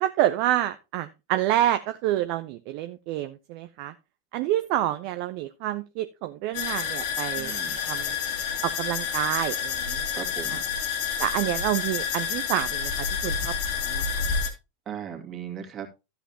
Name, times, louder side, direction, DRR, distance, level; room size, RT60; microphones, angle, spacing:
voice 1, 0.0-3.9 4.3-7.5 7.9-8.1 8.8-10.0 10.5-10.6 11.2-12.9 13.2-13.5 13.9-14.0, right 13 dB, 45° right, 10 dB, 0.6 m, -28 dB
sound 1, 6.5-14.5, left 6 dB, 50° left, 2.1 m, -29 dB
voice 2, 7.4-7.8 10.1-10.6 14.9-15.9, right 8 dB, 25° right, 2 dB, 2.3 m, -37 dB
13.0 x 8.0 x 2.8 m, 0.26 s
figure-of-eight pair, 90°, 0 cm